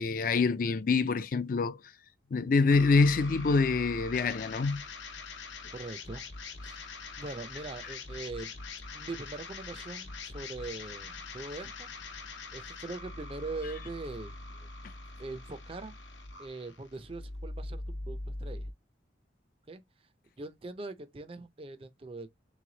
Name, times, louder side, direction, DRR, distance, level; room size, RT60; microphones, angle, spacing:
voice 1, 0.0-1.8 2.3-4.8, left 4 dB, 45° left, 0.4 m, -26 dB
sound 1, 2.7-18.7, left 3 dB, 80° left, 0.8 m, -43 dB
voice 2, 5.7-6.3 6.6-6.9 7.2-8.6 8.9-11.9 12.5-14.7 15.2-16.0 16.4-18.7 19.7-19.8 20.4-22.3, right 3 dB, 30° right, 0.4 m, -42 dB
3.4 x 3.2 x 3.8 m
head